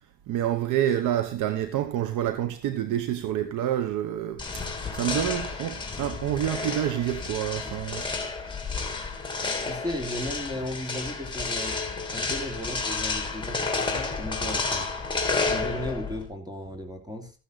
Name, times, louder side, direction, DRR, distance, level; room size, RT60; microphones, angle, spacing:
voice 1, 0.3-8.0, right 11 dB, 85° right, 1.1 m, -28 dB
sound 1, 4.4-16.3, left 4 dB, 15° left, 3.0 m, -31 dB
voice 2, 9.6-11.8 12.1-14.9 15.5-17.3, left 1 dB, 15° right, 3.0 m, -35 dB
14.5 x 8.4 x 3.9 m
cardioid pair, 90°, 30 cm